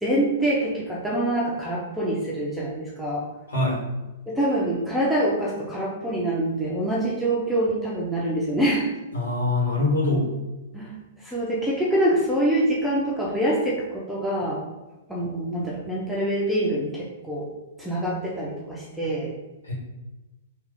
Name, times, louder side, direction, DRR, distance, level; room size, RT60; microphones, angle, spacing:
voice 1, 0.0-3.2 4.3-8.9 10.7-10.9 11.2-14.6 15.1-17.5 17.8-19.3, right 1 dB, ahead, -6 dB, 0.7 m, -25 dB
voice 2, 3.5-3.8 9.1-10.3 19.6-19.7, left 2 dB, 75° left, -4 dB, 1.3 m, -23 dB
3.2 x 2.4 x 3.6 m, 1.1 s
figure-of-eight pair, 110°, 0 cm